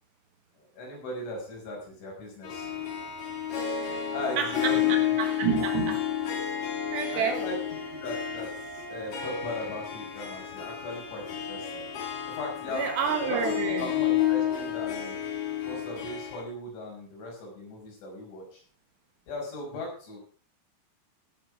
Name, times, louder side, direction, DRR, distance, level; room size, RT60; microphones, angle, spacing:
voice 1, 0.6-2.7 3.8-5.0 7.1-7.6 8.0-11.9 12.3-12.9 13.2-15.2 15.6-18.6 19.3-20.2, left 1 dB, 65° left, -1 dB, 7.8 m, -38 dB
Harp, 2.4-16.4, left 10 dB, 50° left, 3.7 m, -31 dB
voice 2, 4.4-6.6 6.9-7.4 12.7-13.9, right 7 dB, 65° right, 5 dB, 3.4 m, -30 dB
17.5 x 8.5 x 4.7 m, 0.42 s
omnidirectional pair, 5.8 m